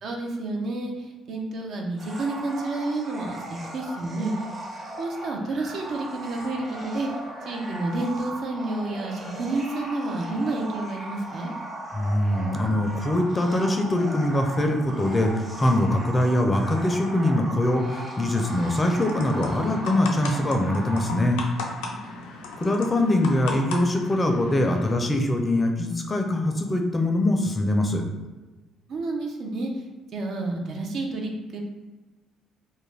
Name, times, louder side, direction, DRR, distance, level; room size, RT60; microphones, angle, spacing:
voice 1, 0.0-4.3 5.0-7.1 7.5-11.5 21.8-22.2 28.9-29.8 30.1-31.6, right 2 dB, 65° right, 1 dB, 0.5 m, -30 dB
sound 1, 2.0-21.1, right 1 dB, 35° right, 0.8 m, -38 dB
voice 2, 11.9-21.4 22.6-28.0, left 1 dB, 25° left, 3 dB, 0.4 m, -23 dB
sound 2, 18.4-24.9, left 3 dB, 85° left, 0.4 m, -36 dB
2.3 x 2.1 x 3.2 m, 1.2 s
supercardioid pair, 70°, 0 cm